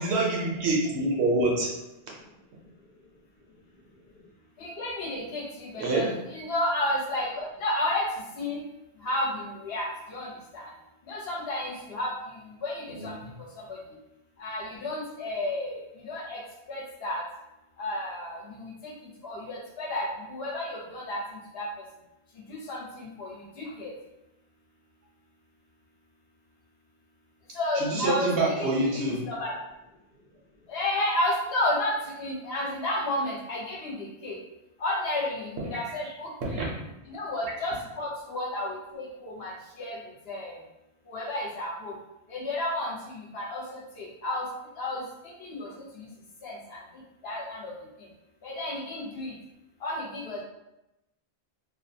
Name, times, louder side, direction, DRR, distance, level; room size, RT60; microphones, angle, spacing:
voice 1, 0.0-1.7 5.8-6.1 13.0-13.1 27.7-29.2 36.4-36.7, right 2 dB, 85° right, -2 dB, 1.0 m, -26 dB
voice 2, 4.6-8.1 8.4-8.6 9.0-10.7 11.1-12.1 12.6-13.2 13.7-13.8 14.4-15.7 16.0-16.4 16.7-17.2 17.8-18.9 19.2-21.2 21.5-21.7 22.5-23.9 27.5-29.5 30.7-34.4 34.8-36.7 37.1-40.0 40.3-40.5 41.1-41.9 42.3-44.5 44.8-45.7 46.0-46.1 46.4-46.8 47.2-47.7 48.4-49.3 49.8-50.4, left 1 dB, 70° left, -4 dB, 1.0 m, -32 dB
2.6 x 2.2 x 2.6 m, 0.92 s
omnidirectional pair, 1.1 m